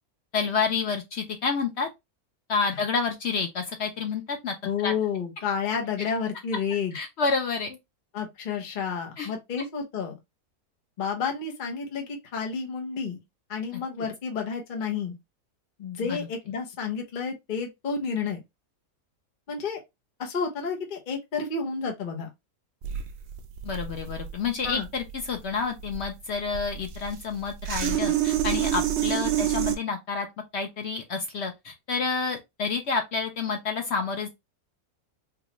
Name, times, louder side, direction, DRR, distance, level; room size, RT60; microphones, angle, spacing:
voice 1, 0.3-1.9 2.5-4.5 4.8-4.9 6.9-7.8 9.2-9.3 16.1-16.2 23.6-30.3 30.5-34.3, left 5 dB, 75° left, 0.6 m, -29 dB
voice 2, 4.6-7.0 8.1-10.2 11.0-13.2 13.5-15.2 15.8-18.4 19.5-19.8 20.2-22.3 24.6-24.9, left 6 dB, 40° left, 0.8 m, -30 dB
sound 1, 22.8-29.8, right 11 dB, 80° right, 0.6 m, -28 dB
3.8 x 2.3 x 2.9 m
omnidirectional pair, 1.7 m